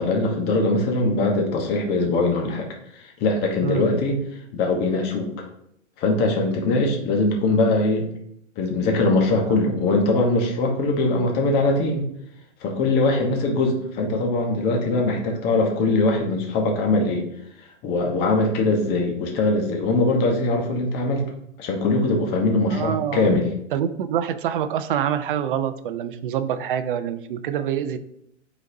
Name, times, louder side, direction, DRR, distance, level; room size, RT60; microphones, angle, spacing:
voice 1, 0.0-2.7 2.9-4.2 4.5-5.5 6.0-8.1 8.6-12.1 12.6-17.3 17.8-21.3 21.6-23.5, left 2 dB, 25° left, 2 dB, 1.1 m, -21 dB
voice 2, 22.7-23.4 23.7-28.0, right 9 dB, 45° right, 12 dB, 0.5 m, -26 dB
9.6 x 4.0 x 2.7 m, 0.75 s
hypercardioid pair, 135°, 39 cm